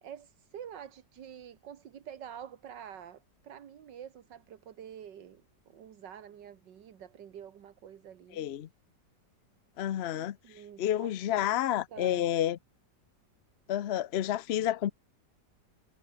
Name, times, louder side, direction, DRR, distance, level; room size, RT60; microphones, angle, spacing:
voice 1, 0.0-8.5 10.1-12.3, right 9 dB, 80° right, 1.9 m, -48 dB
voice 2, 8.3-8.7 9.8-10.4 10.8-12.6 13.7-14.9, left 11 dB, 70° left, 0.6 m, -29 dB
omnidirectional pair, 1.9 m